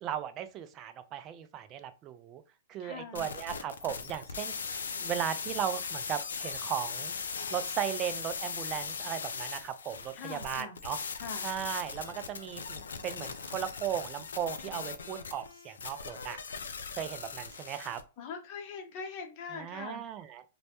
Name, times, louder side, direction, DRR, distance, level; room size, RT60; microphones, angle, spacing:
voice 1, 0.0-2.4 2.7-7.1 7.5-11.0 11.4-16.4 17.0-18.0 19.5-20.4, right 10 dB, 30° right, 0.3 m, -37 dB
voice 2, 2.8-3.3 10.1-10.8 11.2-11.5 18.2-20.0, left 5 dB, 40° left, 0.7 m, -42 dB
sound 1, 3.1-18.0, left 5 dB, 80° left, 0.3 m, -39 dB
2.1 x 2.0 x 2.8 m
hypercardioid pair, 120°, 0 cm